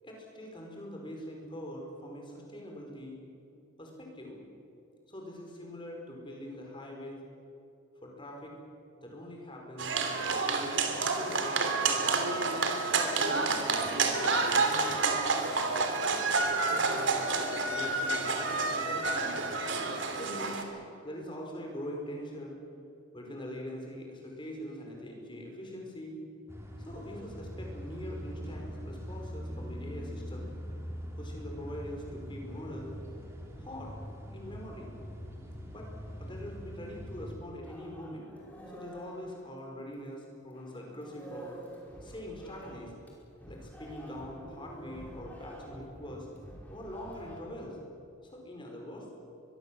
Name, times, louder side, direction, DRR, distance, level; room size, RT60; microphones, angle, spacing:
voice 1, 0.0-3.2 3.8-4.5 5.1-7.2 8.0-8.6 9.0-10.0 10.2-10.8 11.1-12.1 12.9-15.2 16.0-16.4 16.7-19.4 20.1-20.6 21.0-22.6 23.1-26.2 26.8-30.5 31.2-32.9 33.6-33.9 34.3-34.9 35.7-35.9 36.2-38.3 38.7-41.6 42.0-42.9 43.4-46.3 46.7-47.8 48.2-49.1, equal, 25° left, 1 dB, 5.4 m, -43 dB
sound 1, 9.8-20.6, right 4 dB, 65° right, 3.0 m, -29 dB
sound 2, 26.5-37.3, equal, 15° right, 3.2 m, -42 dB
sound 3, 37.6-40.2 40.5-47.4, right 1 dB, 10° left, 5.4 m, -49 dB
24.0 x 23.0 x 7.9 m, 2.7 s
head